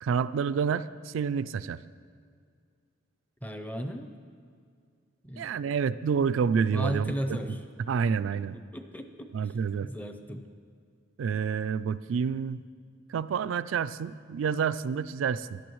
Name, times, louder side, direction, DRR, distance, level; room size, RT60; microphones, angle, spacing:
voice 1, 0.0-1.8 5.4-7.1 7.9-8.6 9.3-9.9 11.2-12.6 13.1-15.6, right 6 dB, 70° right, 14 dB, 0.3 m, -28 dB
voice 2, 3.4-4.1 5.2-5.5 6.7-7.6 8.3-8.4 8.7-9.3 9.8-10.5, equal, 10° left, 6 dB, 0.6 m, -35 dB
16.5 x 11.5 x 3.1 m, 2.2 s
head